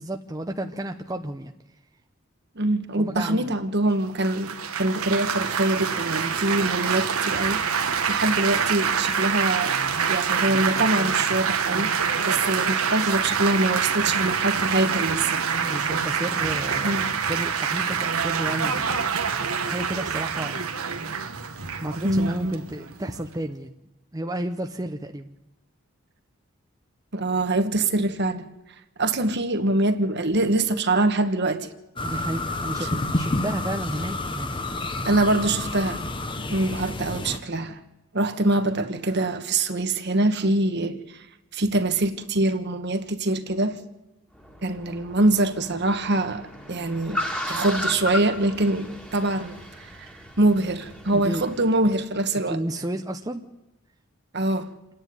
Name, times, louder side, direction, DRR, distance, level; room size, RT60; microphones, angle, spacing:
voice 1, 0.0-1.5 3.0-3.6 15.6-19.2 19.6-20.7 21.8-23.7 24.1-25.3 32.0-34.9 51.1-51.4 52.5-53.4, right 1 dB, 15° right, 0.7 m, -32 dB
voice 2, 2.5-7.6 8.1-9.8 10.1-11.9 12.3-15.4 16.8-17.1 22.0-22.6 27.1-28.5 29.0-31.7 35.0-36.0 36.5-37.8 38.1-41.0 41.5-43.8 44.6-47.2 47.5-50.1 50.4-52.6 54.3-54.7, right 2 dB, 50° right, 1.3 m, -24 dB
Laughter / Applause / Chatter, 4.2-23.3, right 6 dB, 90° right, 1.5 m, -26 dB
sound 1, 32.0-37.4, left 2 dB, 25° left, 1.0 m, -29 dB
Car, 44.3-51.7, left 1 dB, 5° left, 2.1 m, -35 dB
28.0 x 10.0 x 9.4 m
head